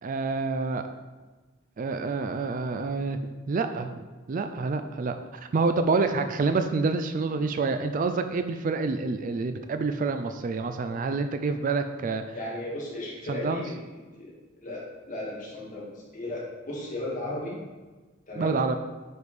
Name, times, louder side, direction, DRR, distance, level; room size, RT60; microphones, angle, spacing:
voice 1, 0.0-0.8 1.8-3.2 3.5-5.1 5.5-12.2 13.3-13.6 18.4-18.8, right 4 dB, 40° right, 8 dB, 0.3 m, -27 dB
voice 2, 12.3-13.7 14.2-14.3 14.6-17.6 18.3-18.6, left 1 dB, 40° left, -5 dB, 2.1 m, -35 dB
8.4 x 4.9 x 3.4 m, 1.3 s
head